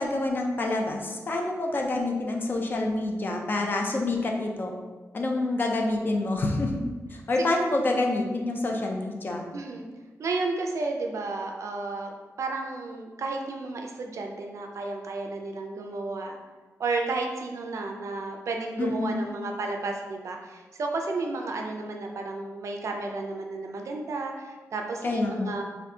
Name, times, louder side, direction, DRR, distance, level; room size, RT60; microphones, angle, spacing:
voice 1, 0.0-4.7 5.1-6.8 7.1-9.5 18.8-19.2 25.0-25.5, left 2 dB, 35° left, 1 dB, 0.4 m, -27 dB
voice 2, 9.5-9.9 10.2-12.1 12.4-16.4 16.8-25.6, right 3 dB, 60° right, 2 dB, 0.4 m, -32 dB
4.2 x 2.6 x 2.7 m, 1.3 s
wide cardioid pair, 175°, 6 cm